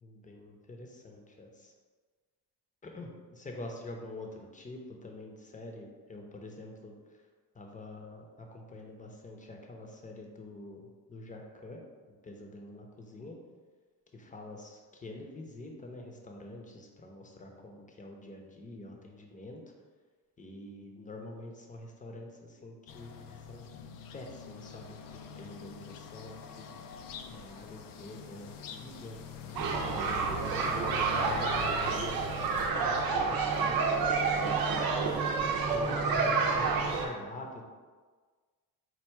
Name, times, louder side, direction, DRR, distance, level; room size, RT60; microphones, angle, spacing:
voice 1, 0.0-1.7 2.8-6.9 7.5-11.8 12.2-13.4 14.1-19.6 20.4-23.1 23.5-23.6 24.1-26.7 27.3-29.2 29.8-35.2 35.7-37.7, left 2 dB, 20° left, 1 dB, 0.7 m, -46 dB
sound 1, 22.9-32.7, left 7 dB, 65° left, 0.5 m, -45 dB
sound 2, 29.5-37.1, right 4 dB, 70° right, 0.7 m, -29 dB
4.5 x 2.3 x 4.5 m, 1.5 s
cardioid pair, 95°, 37 cm